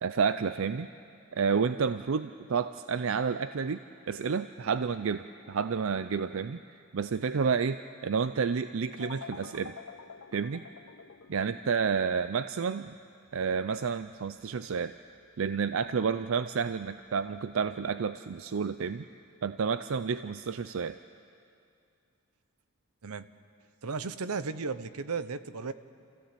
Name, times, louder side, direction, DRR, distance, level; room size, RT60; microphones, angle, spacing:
voice 1, 0.0-0.9 1.3-6.6 6.9-9.8 10.3-10.6 11.3-12.9 13.3-14.9 15.4-19.1 19.4-21.0, right 6 dB, 60° right, 12 dB, 0.4 m, -30 dB
sound 1, 9.0-17.4, left 5 dB, 70° left, 0.7 m, -50 dB
voice 2, 23.8-25.7, right 4 dB, 80° right, 13 dB, 0.8 m, -35 dB
28.0 x 15.5 x 8.4 m, 2.5 s
head